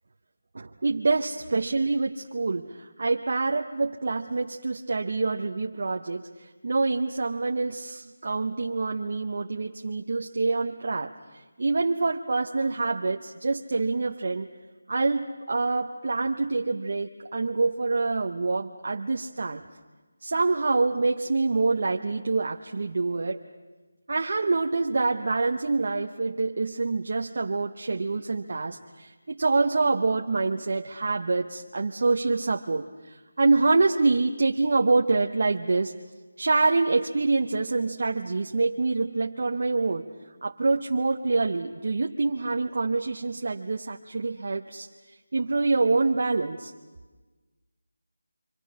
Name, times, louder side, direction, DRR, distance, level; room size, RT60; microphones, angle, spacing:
voice 1, 0.5-11.1 11.6-14.5 14.9-19.6 20.2-23.4 24.1-36.0 36.4-40.1 40.4-44.9 45.3-46.7, right 3 dB, 40° right, 2 dB, 0.9 m, -26 dB
29.5 x 25.0 x 6.3 m, 1.3 s
figure-of-eight pair, 175°, 0 cm